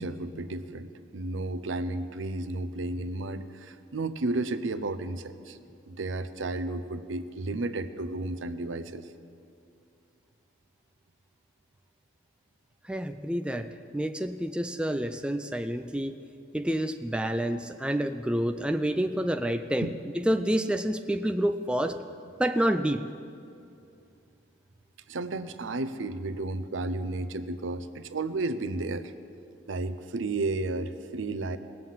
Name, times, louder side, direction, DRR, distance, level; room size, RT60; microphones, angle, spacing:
voice 1, 0.0-5.6 5.9-9.0 19.8-20.0 25.1-29.1 29.7-31.6, right 2 dB, 90° right, 11 dB, 0.6 m, -32 dB
voice 2, 12.8-16.1 16.5-19.9 20.1-22.0 22.4-23.1, right 1 dB, 5° right, 8 dB, 0.3 m, -28 dB
18.5 x 7.7 x 7.5 m, 2.5 s
head